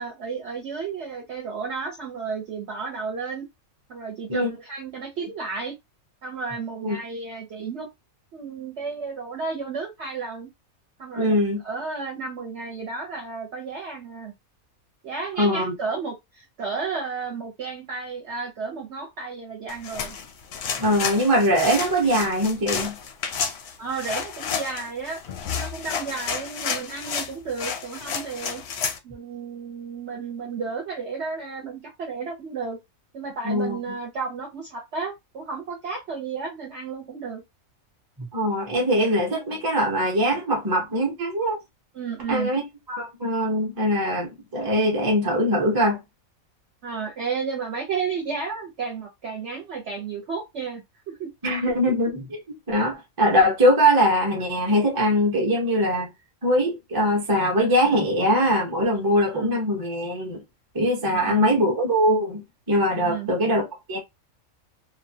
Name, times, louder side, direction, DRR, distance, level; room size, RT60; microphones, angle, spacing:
voice 1, 0.0-3.5 3.9-5.8 6.2-7.9 8.3-10.5 11.0-11.3 11.6-14.3 15.0-20.2 23.8-25.2 25.5-28.6 29.0-32.8 33.1-37.4 41.9-42.5 46.8-50.8 51.2-51.6 59.3-59.6 61.0-61.5 63.0-63.3, right 5 dB, 60° right, 0.9 m, -32 dB
voice 2, 11.2-11.6 15.4-15.7 20.8-23.0 33.4-33.8 38.2-41.6 42.3-42.6 42.9-46.0 51.4-52.4 52.7-56.1 56.4-60.4 60.7-64.0, equal, 20° right, 0.6 m, -22 dB
sound 1, 19.7-29.0, left 6 dB, 65° left, 0.7 m, -31 dB
2.8 x 2.2 x 2.7 m
omnidirectional pair, 1.5 m